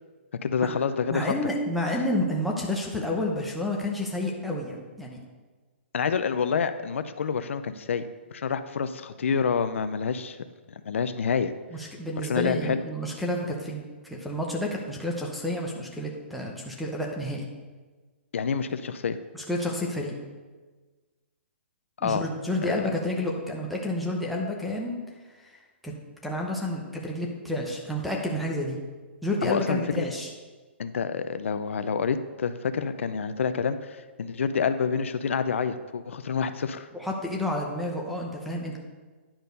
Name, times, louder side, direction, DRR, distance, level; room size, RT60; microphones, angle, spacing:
voice 1, 0.4-1.5 1.9-2.0 5.9-8.0 8.3-10.4 10.7-11.5 12.3-12.8 18.3-19.2 22.0-22.2 22.6-22.9 29.4-30.1 30.8-36.9, left 6 dB, 80° left, 11 dB, 0.5 m, -28 dB
voice 2, 1.1-5.2 11.7-17.5 19.3-20.1 22.0-25.0 25.4-25.5 25.8-25.9 26.2-28.8 29.2-30.3 36.9-38.8, left 1 dB, ahead, -3 dB, 0.7 m, -30 dB
10.0 x 4.5 x 5.2 m, 1.3 s
hypercardioid pair, 170°, 7 cm